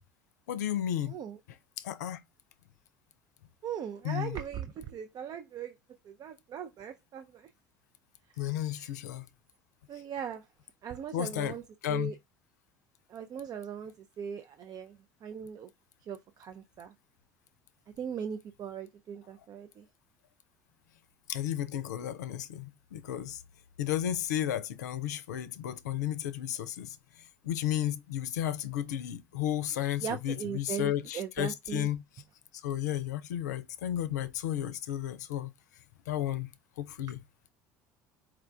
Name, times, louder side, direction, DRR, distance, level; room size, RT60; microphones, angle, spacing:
voice 1, 0.5-1.2 1.8-2.2 4.0-4.4 8.4-9.3 11.1-11.6 11.8-12.1 21.3-23.4 23.8-27.0 27.4-32.0 32.5-35.5 36.1-36.5 36.8-37.2, left 11 dB, 80° left, 0.5 m, -33 dB
voice 2, 1.1-1.4 3.6-5.7 6.0-7.5 8.4-8.9 9.9-10.5 10.8-11.6 11.9-12.2 13.1-15.7 16.0-16.9 18.0-19.9 30.0-31.9, right 8 dB, 45° right, 0.5 m, -39 dB
4.7 x 2.3 x 3.4 m
hypercardioid pair, 65°, 9 cm